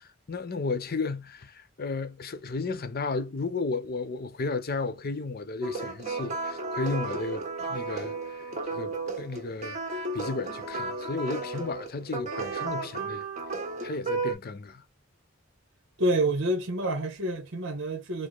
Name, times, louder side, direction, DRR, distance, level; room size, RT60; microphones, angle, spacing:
voice 1, 0.3-13.2 13.8-14.8, left 3 dB, 45° left, 0.6 m, -33 dB
sound 1, 5.6-14.3, right 3 dB, 35° right, 1.4 m, -33 dB
voice 2, 16.0-18.3, right 1 dB, 60° right, 1.0 m, -27 dB
4.7 x 2.1 x 3.9 m
head